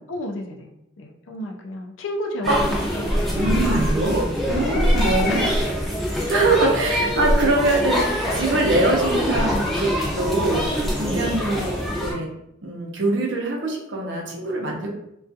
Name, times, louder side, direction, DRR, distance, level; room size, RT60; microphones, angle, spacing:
voice 1, 0.1-3.2 4.1-5.0 5.3-5.6 6.3-7.1 8.3-8.6 11.1-11.5, left 1 dB, 80° left, 2 dB, 0.4 m, -33 dB
sound 1, 2.4-12.1, equal, ahead, 0.5 m, -24 dB
voice 2, 3.3-5.5 6.3-8.0 8.3-9.9 10.1-10.7 10.9-12.3 12.6-14.9, right 2 dB, 70° right, -1 dB, 0.6 m, -23 dB
2.4 x 2.3 x 2.6 m, 0.81 s
head